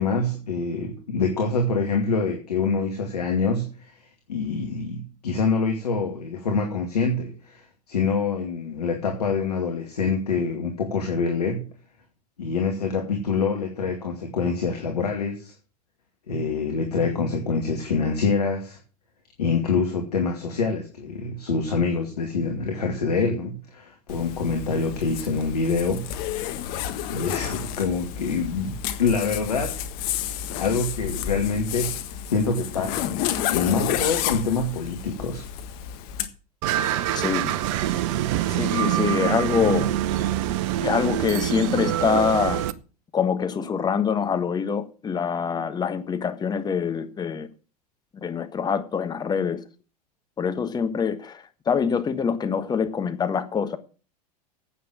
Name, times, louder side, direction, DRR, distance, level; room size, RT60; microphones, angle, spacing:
voice 1, 0.0-3.9 4.3-11.6 12.4-15.5 16.3-18.8 19.4-26.0 27.1-29.8 30.6-32.0 32.3-35.4, left 4 dB, 75° left, 2.3 m, -25 dB
Zipper (clothing), 24.1-36.3, left 10 dB, 45° left, 1.6 m, -30 dB
sound 1, 36.6-42.7, right 12 dB, 50° right, 0.9 m, -25 dB
voice 2, 37.1-37.5 38.4-39.9 40.8-42.6 43.1-47.5 48.2-49.6 50.4-53.8, left 6 dB, 20° left, 1.4 m, -25 dB
9.8 x 8.5 x 7.4 m
figure-of-eight pair, 90°, 20 cm